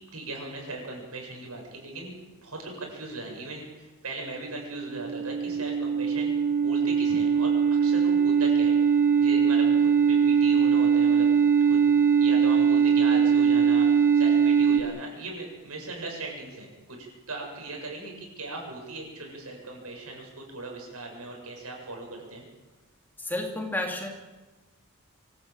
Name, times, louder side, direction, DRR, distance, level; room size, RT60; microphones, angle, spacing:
voice 1, 0.1-2.1 2.4-6.3 6.6-8.9 9.2-11.3 11.7-11.8 12.2-22.4, right 2 dB, 90° right, 1 dB, 7.8 m, -38 dB
sound 1, 4.6-14.8, right 6 dB, 35° right, 2.3 m, -21 dB
voice 2, 23.2-24.1, left 1 dB, 10° left, 2 dB, 2.7 m, -31 dB
24.5 x 15.0 x 8.9 m, 1.2 s
head